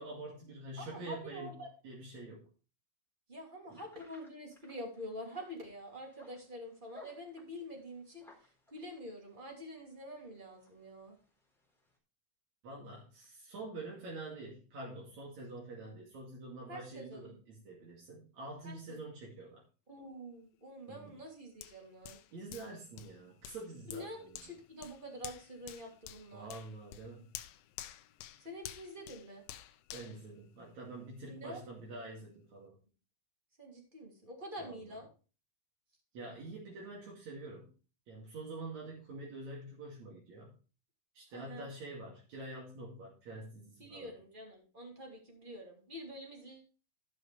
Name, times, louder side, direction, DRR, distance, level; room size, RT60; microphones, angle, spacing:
voice 1, 0.0-2.5 3.7-3.8 12.6-19.6 20.9-21.1 22.3-24.5 26.3-27.2 29.9-32.8 34.6-34.9 36.1-37.7 38.1-40.6 41.1-44.1, right 2 dB, 45° right, -4 dB, 2.9 m, -46 dB
voice 2, 0.8-1.7 3.3-11.2 16.7-17.4 18.6-19.0 19.9-22.2 23.9-26.5 28.4-29.4 31.2-31.6 33.6-35.1 41.3-41.7 43.8-46.6, equal, 20° right, 1 dB, 1.3 m, -47 dB
sound 1, 3.7-12.0, left 3 dB, ahead, 3.0 m, -62 dB
Hands, 21.6-31.1 31.6-31.7, left 13 dB, 80° left, 2.9 m, -51 dB
14.5 x 6.5 x 3.3 m, 0.34 s
omnidirectional pair, 5.7 m